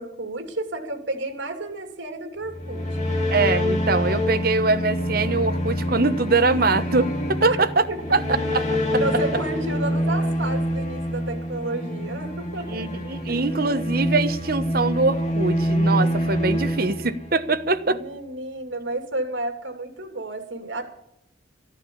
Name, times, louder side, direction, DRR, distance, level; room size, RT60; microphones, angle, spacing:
voice 1, 0.0-3.1 7.4-7.6 7.9-8.0 9.0-13.0 13.3-13.6 17.9-20.8, right 2 dB, 75° right, 6 dB, 2.9 m, -31 dB
sound 1, 2.4-17.7, equal, 40° left, 2.5 m, -26 dB
voice 2, 3.3-7.8 8.1-8.2 8.5-8.6 8.9-9.0 12.7-18.0, right 3 dB, 50° right, 9 dB, 1.0 m, -23 dB
14.0 x 11.5 x 7.0 m, 0.79 s
head